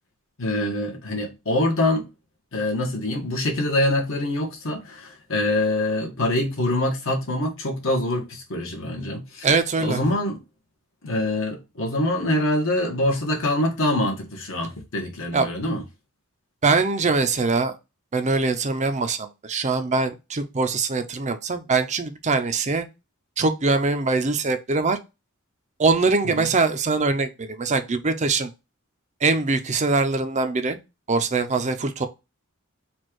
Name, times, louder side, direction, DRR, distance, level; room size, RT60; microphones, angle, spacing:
voice 1, 0.4-2.1 2.5-9.5 9.8-10.4 11.0-15.8 26.2-26.5, left 1 dB, 65° left, 1.5 m, -25 dB
voice 2, 9.4-10.0 15.3-15.5 16.6-17.8 18.1-22.9 23.4-25.0 25.8-28.5 29.2-30.8 31.1-32.1, right 3 dB, 35° right, 0.6 m, -22 dB
4.3 x 2.4 x 4.5 m
head